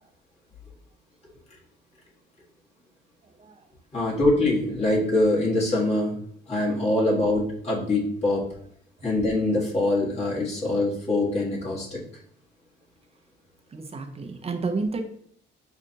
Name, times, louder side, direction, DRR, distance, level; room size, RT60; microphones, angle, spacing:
voice 1, 3.9-6.1 6.5-8.5 9.0-12.0, left 2 dB, 35° left, -5 dB, 1.6 m, -24 dB
voice 2, 13.7-15.0, right 3 dB, 30° right, 5 dB, 0.6 m, -30 dB
6.3 x 2.5 x 2.8 m, 0.64 s
cardioid pair, 90°, 20 cm